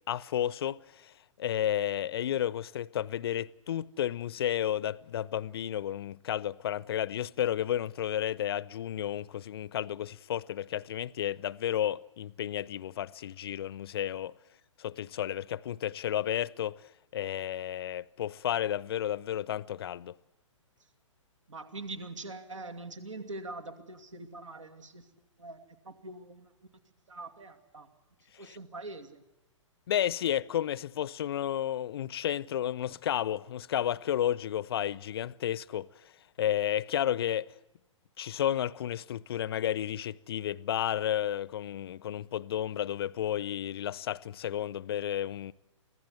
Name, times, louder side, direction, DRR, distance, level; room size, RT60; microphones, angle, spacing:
voice 1, 0.1-1.1 1.4-14.3 14.8-16.8 17.1-20.1 28.4-28.6 29.9-35.9 36.4-37.5 38.2-45.5, left 11 dB, 50° left, 0.6 m, -32 dB
voice 2, 21.5-25.1 25.4-26.5 27.1-27.9 28.4-29.2, right 2 dB, 70° right, 2.5 m, -43 dB
25.0 x 16.0 x 7.8 m
figure-of-eight pair, 120°, 17 cm